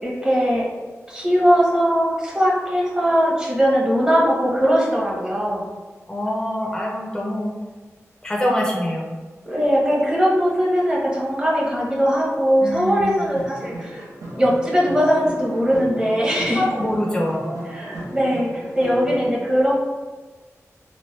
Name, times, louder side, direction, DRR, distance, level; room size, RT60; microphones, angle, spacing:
voice 1, 0.0-0.7 1.1-5.7 9.4-14.0 14.3-16.7 17.7-19.8, equal, 15° right, -4 dB, 0.8 m, -20 dB
voice 2, 6.1-7.5 8.2-9.2 12.6-13.2 16.5-17.6, left 1 dB, 15° left, -1 dB, 0.5 m, -24 dB
sound 1, 13.2-19.3, right 1 dB, 80° right, 0.8 m, -35 dB
3.0 x 2.5 x 3.1 m, 1.3 s
wide cardioid pair, 105°, 6 cm